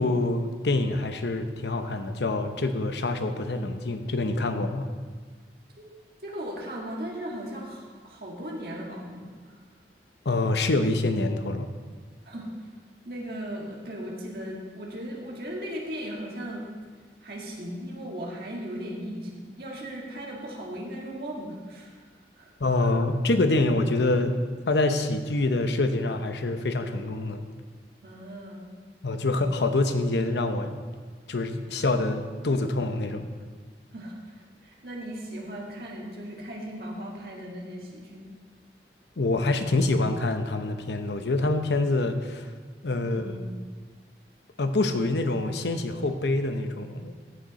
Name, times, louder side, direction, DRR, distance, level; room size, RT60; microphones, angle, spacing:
voice 1, 0.0-4.9 10.2-11.7 22.6-24.4 24.7-27.4 29.0-30.8 31.3-33.3 39.2-42.5 42.8-43.4 44.6-47.1, left 2 dB, 80° left, 8 dB, 0.8 m, -26 dB
voice 2, 6.2-9.6 12.3-12.5 13.1-16.7 17.2-22.1 22.4-22.5 22.8-22.9 28.0-28.7 33.9-38.3 43.0-43.6, equal, 60° right, -2 dB, 1.9 m, -37 dB
14.5 x 6.5 x 4.2 m, 1.5 s
head